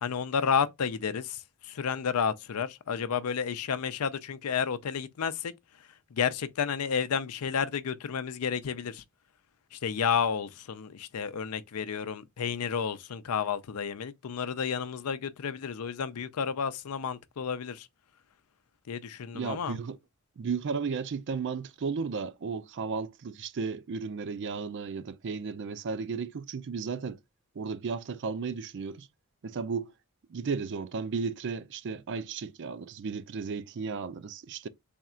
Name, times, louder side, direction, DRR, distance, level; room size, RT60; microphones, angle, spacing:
voice 1, 0.0-5.5 6.1-9.0 9.7-17.9 18.9-19.8, left 7 dB, 80° left, 0.5 m, -31 dB
voice 2, 19.3-20.0 20.4-27.2 27.6-29.1 29.4-29.9 30.3-34.7, right 5 dB, 55° right, 0.4 m, -34 dB
3.5 x 2.4 x 4.2 m
head